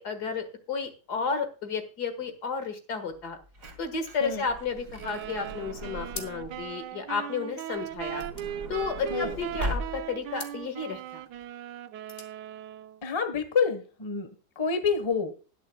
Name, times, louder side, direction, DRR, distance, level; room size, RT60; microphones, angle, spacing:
voice 1, 0.0-3.4 3.8-8.2 8.7-11.2, left 5 dB, 65° left, 8 dB, 2.2 m, -32 dB
Truck / Door, 3.2-6.7 7.8-10.3 11.0-11.1 11.3-11.4, right 1 dB, 50° right, 2.5 m, -39 dB
sound 1, 5.0-13.0, right 11 dB, 75° right, 1.3 m, -39 dB
sound 2, 6.1-6.7 7.0-7.1 7.3-9.5 10.3-10.7 11.8-12.4, left 4 dB, 40° left, 1.7 m, -44 dB
voice 2, 13.0-14.3 14.6-15.3, left 5 dB, 20° left, 10 dB, 1.0 m, -27 dB
20.0 x 6.9 x 2.2 m, 0.35 s
omnidirectional pair, 1.9 m